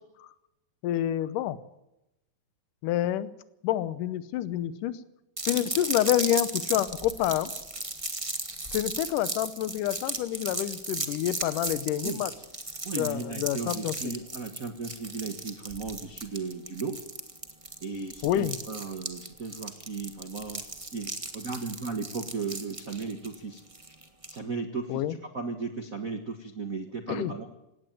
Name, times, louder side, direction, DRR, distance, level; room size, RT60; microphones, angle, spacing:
voice 1, 0.8-1.6 2.8-3.3 3.6-5.0 5.5-7.5 8.7-12.3 13.0-14.1 18.2-18.6 24.9-25.2 27.1-27.3, left 12 dB, 75° left, 15 dB, 2.4 m, -28 dB
sound 1, 5.4-24.4, right 2 dB, 30° right, 0.6 m, -36 dB
voice 2, 12.8-17.0 17.8-20.6 20.9-23.6 24.3-27.5, right 4 dB, 70° right, 6 dB, 0.8 m, -36 dB
18.5 x 17.0 x 9.2 m, 0.92 s
omnidirectional pair, 3.9 m